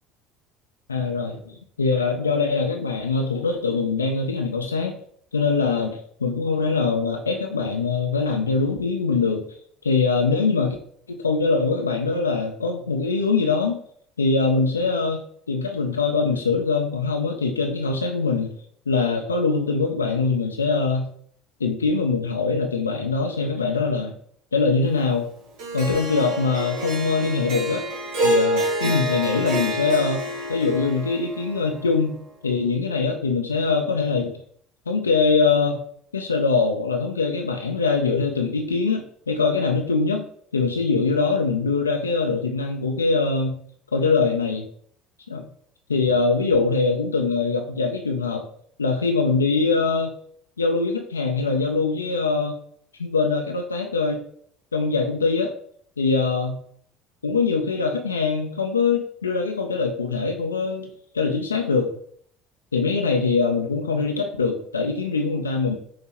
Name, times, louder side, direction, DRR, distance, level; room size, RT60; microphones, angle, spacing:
voice 1, 0.9-5.0 5.3-9.5 9.8-10.8 11.1-13.8 14.2-15.2 15.5-18.5 18.9-21.1 21.6-24.1 24.5-25.3 25.7-27.9 28.2-30.2 30.5-32.1 32.4-34.4 34.9-35.8 36.1-40.3 40.5-43.6 43.9-44.7 45.3-45.5 45.9-48.5 48.8-50.1 50.6-52.5 53.0-54.2 54.7-55.5 56.0-56.6 57.2-61.9 62.7-65.8, left 4 dB, 85° left, 3 dB, 0.4 m, -23 dB
Harp, 25.6-32.0, right 1 dB, 60° right, 1.2 m, -27 dB
5.6 x 2.8 x 2.9 m, 0.62 s
figure-of-eight pair, 60°, 0 cm